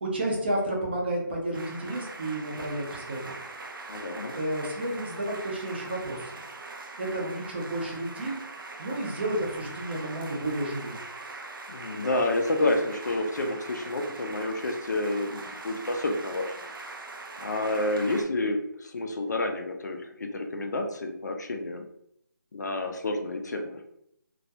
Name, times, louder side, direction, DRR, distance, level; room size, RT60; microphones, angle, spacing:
voice 1, 0.0-3.3 4.3-6.4 7.0-8.4 8.8-11.0, right 1 dB, 30° right, -1 dB, 0.5 m, -31 dB
sound 1, 1.5-18.2, right 3 dB, 80° right, 0.4 m, -42 dB
voice 2, 3.9-4.3 11.7-16.5 17.4-21.8 22.5-23.8, left 2 dB, 55° left, 4 dB, 0.4 m, -29 dB
2.3 x 2.1 x 2.7 m, 0.75 s
figure-of-eight pair, 170°, 11 cm